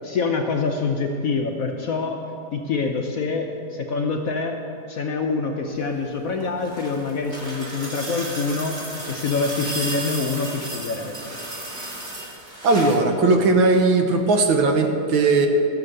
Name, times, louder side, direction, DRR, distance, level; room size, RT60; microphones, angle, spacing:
voice 1, 0.0-2.2 2.5-4.6 4.9-8.7 9.1-11.4, left 4 dB, 60° left, 3 dB, 0.9 m, -25 dB
sound 1, 6.3-13.1 14.4-14.5, right 1 dB, 30° right, 2.3 m, -34 dB
voice 2, 12.6-15.5, right 3 dB, 80° right, 5 dB, 1.8 m, -18 dB
14.5 x 7.3 x 6.6 m, 2.8 s
omnidirectional pair, 2.2 m